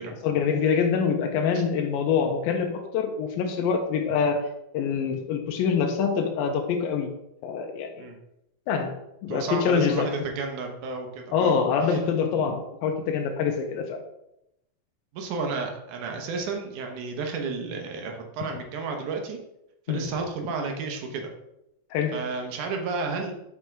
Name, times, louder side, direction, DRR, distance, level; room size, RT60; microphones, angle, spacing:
voice 1, 0.2-4.5 4.7-7.1 7.4-7.9 8.7-8.9 9.2-10.1 11.3-14.0 19.9-20.1 21.9-22.2, left 6 dB, 90° left, 2 dB, 2.4 m, -25 dB
voice 2, 9.3-11.6 11.9-12.0 15.1-19.4 19.9-21.3 22.1-23.3, right 4 dB, 70° right, 3 dB, 2.2 m, -32 dB
6.1 x 5.5 x 4.7 m, 0.84 s
omnidirectional pair, 4.1 m